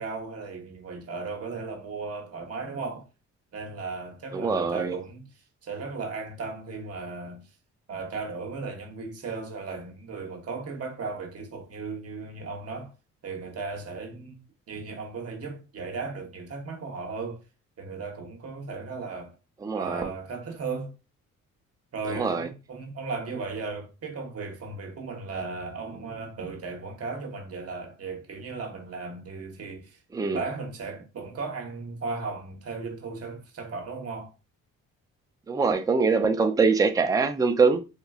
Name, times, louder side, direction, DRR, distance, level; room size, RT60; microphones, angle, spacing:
voice 1, 0.0-3.1 3.5-7.5 7.9-12.9 13.2-17.4 17.8-19.4 19.8-20.9 21.9-34.3, right 4 dB, 55° right, 1.2 m, -36 dB
voice 2, 4.3-5.0 19.6-20.1 22.1-22.5 30.1-30.4 35.5-37.8, right 4 dB, 10° right, 0.4 m, -23 dB
3.4 x 2.9 x 2.4 m
cardioid pair, 90°, 30 cm